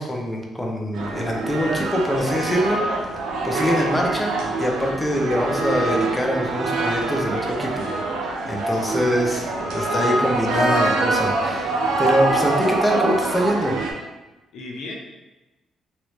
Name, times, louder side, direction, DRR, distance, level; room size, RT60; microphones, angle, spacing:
voice 1, 0.0-2.8 3.4-7.9 8.5-9.4 9.7-13.8, equal, 10° left, 0 dB, 0.6 m, -24 dB
sound 1, 0.9-13.9, right 2 dB, 85° right, 0.4 m, -25 dB
voice 2, 8.7-9.2 14.5-14.9, left 2 dB, 75° left, -1 dB, 0.5 m, -36 dB
3.1 x 2.5 x 3.0 m, 1.1 s
cardioid pair, 90°, 0 cm